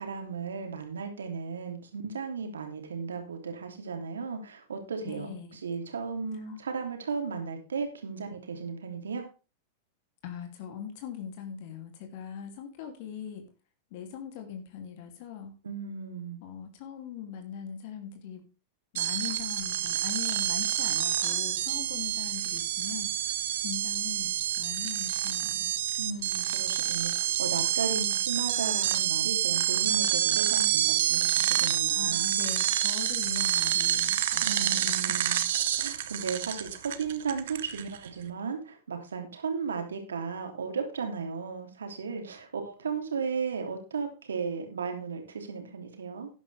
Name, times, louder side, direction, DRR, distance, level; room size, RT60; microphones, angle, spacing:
voice 1, 0.0-5.3 5.6-9.2 15.6-16.4 26.0-32.3 34.4-35.4 35.8-46.3, right 5 dB, 85° right, 4 dB, 3.1 m, -35 dB
voice 2, 5.0-5.6 6.5-6.6 10.2-13.4 13.9-15.6 16.4-18.5 18.9-23.1 23.6-25.7 31.9-35.1, left 8 dB, 60° left, 5 dB, 3.0 m, -41 dB
sound 1, 18.9-38.1, right 11 dB, 70° right, 1.2 m, -28 dB
12.5 x 9.8 x 3.5 m, 0.33 s
hypercardioid pair, 100°, 0 cm